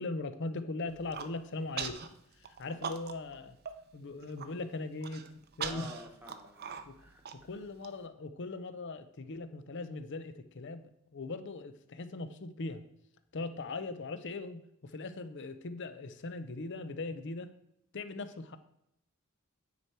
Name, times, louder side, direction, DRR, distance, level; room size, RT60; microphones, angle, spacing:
voice 1, 0.0-2.0 2.4-3.6 3.9-5.3 5.6-5.9 6.9-7.0 7.3-12.8 13.3-17.5 17.9-18.6, left 3 dB, 55° left, 11 dB, 0.6 m, -40 dB
Human voice, 0.9-1.3 1.8-2.1 2.4-3.3 3.7-3.8 4.1-4.5 5.0-7.9, right 7 dB, 45° right, 0.6 m, -40 dB
voice 2, 5.6-7.2, left 1 dB, 10° right, 3 dB, 1.1 m, -50 dB
9.5 x 4.7 x 4.4 m, 0.77 s
head